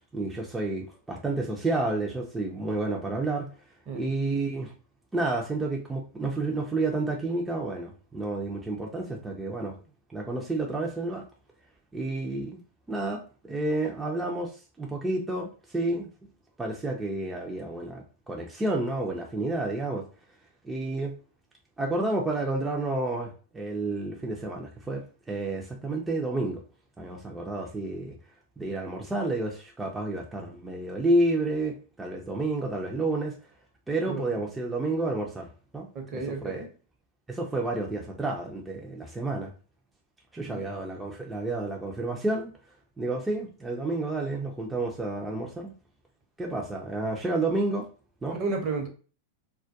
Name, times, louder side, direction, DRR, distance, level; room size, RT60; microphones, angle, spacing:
voice 1, 0.1-3.5 3.9-4.7 5.1-9.8 10.1-11.2 11.9-12.6 12.9-16.1 16.6-20.0 20.6-21.1 21.8-26.6 27.0-28.2 28.6-33.3 33.9-35.5 35.7-35.9 36.4-36.7 37.3-39.5 40.3-42.5 43.0-45.7 46.4-47.9 48.2-48.4, right 2 dB, 10° right, 0.5 m, -30 dB
voice 2, 34.1-34.4 35.9-36.7 40.5-40.6 48.3-48.9, right 3 dB, 40° right, 0.8 m, -32 dB
2.3 x 2.1 x 2.7 m
hypercardioid pair, 95°, 0 cm